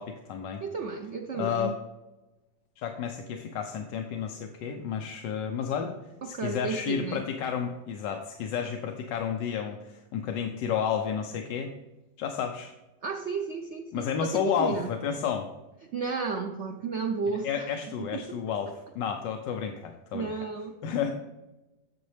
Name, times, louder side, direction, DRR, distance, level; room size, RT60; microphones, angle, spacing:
voice 1, 0.0-0.6 1.3-1.7 2.8-6.0 6.2-11.7 12.2-12.7 13.9-15.5 17.4-20.3 20.8-21.1, left 7 dB, 75° left, 4 dB, 1.3 m, -31 dB
voice 2, 0.6-1.8 6.2-7.3 13.0-14.9 15.9-17.7 18.0-18.4 20.1-20.7, right 5 dB, 85° right, 3 dB, 0.6 m, -33 dB
9.5 x 6.9 x 3.3 m, 1.0 s
omnidirectional pair, 2.1 m